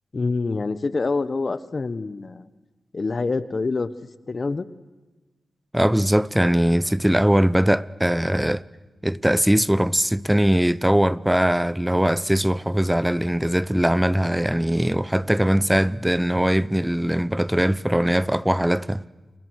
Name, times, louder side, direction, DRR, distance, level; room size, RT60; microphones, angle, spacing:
voice 1, 0.1-2.5 2.9-3.9 4.3-4.7, left 3 dB, 50° left, 1.2 m, -26 dB
voice 2, 5.7-8.6 9.0-19.0, equal, 5° right, 0.8 m, -21 dB
29.5 x 29.5 x 6.5 m
cardioid pair, 55°, 0 cm